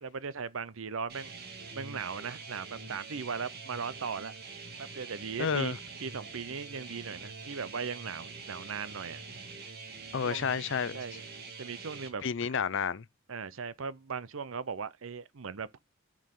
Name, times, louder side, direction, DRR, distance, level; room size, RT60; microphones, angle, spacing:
voice 1, 0.0-1.3 1.7-4.4 4.9-5.7 6.0-9.2 10.2-10.6 10.9-11.3 11.6-12.2 13.3-15.8, right 5 dB, 65° right, 0.6 m, -38 dB
sound 1, 1.1-12.1, right 4 dB, 45° right, 1.8 m, -45 dB
voice 2, 5.4-5.8 10.1-11.0 12.2-13.0, left 6 dB, 55° left, 0.5 m, -30 dB
6.4 x 6.4 x 3.6 m
head